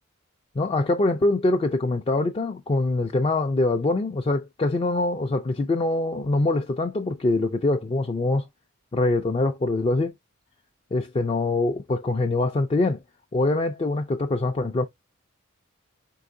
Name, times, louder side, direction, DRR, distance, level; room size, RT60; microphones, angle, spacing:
voice 1, 0.6-8.4 8.9-10.1 10.9-13.0 13.3-14.8, left 2 dB, 25° left, 0.4 m, -24 dB
4.6 x 3.4 x 2.6 m
head